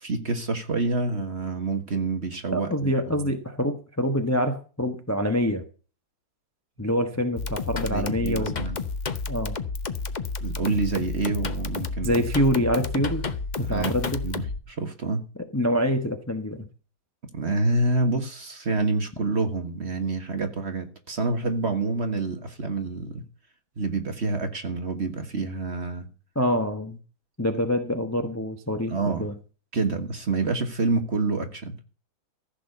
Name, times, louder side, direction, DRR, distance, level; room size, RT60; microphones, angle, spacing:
voice 1, 0.0-3.3 7.9-8.8 10.4-12.2 13.6-14.0 14.2-14.4 14.7-15.2 17.3-23.2 23.8-26.1 28.9-29.3 29.7-31.8, right 3 dB, 35° right, 1.6 m, -27 dB
voice 2, 2.5-5.6 6.8-8.7 9.3-9.6 12.0-13.2 13.6-14.2 15.5-16.7 26.3-27.0 27.4-29.4, equal, 10° left, 0.8 m, -26 dB
sound 1, 7.4-14.6, left 4 dB, 85° left, 0.4 m, -31 dB
15.0 x 6.5 x 6.7 m
omnidirectional pair, 2.3 m